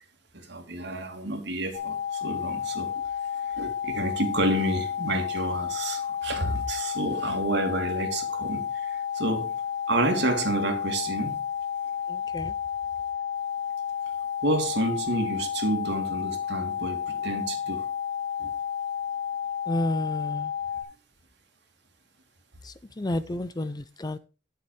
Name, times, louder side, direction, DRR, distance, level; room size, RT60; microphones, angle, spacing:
voice 1, 0.3-2.9 3.4-9.5 9.9-11.4 14.4-17.9 18.4-18.5, right 1 dB, 65° right, 2.7 m, -29 dB
sound 1, 1.7-20.8, left 8 dB, 45° left, 3.7 m, -31 dB
voice 2, 12.1-12.5 19.7-20.5 22.6-24.2, left 1 dB, 20° left, 0.5 m, -31 dB
12.0 x 6.9 x 4.7 m
head